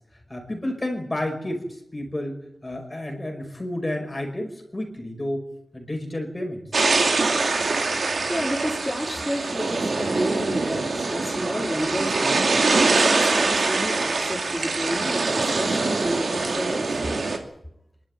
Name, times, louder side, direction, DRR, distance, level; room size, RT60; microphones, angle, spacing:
voice 1, 0.3-5.5 5.7-6.6, left 1 dB, 25° left, 3 dB, 5.5 m, -31 dB
sound 1, 6.7-17.4, right 3 dB, 80° right, 2.5 m, -23 dB
voice 2, 8.3-17.0, equal, ahead, -3 dB, 4.2 m, -31 dB
26.0 x 12.0 x 9.1 m, 0.79 s
wide cardioid pair, 85°, 0 cm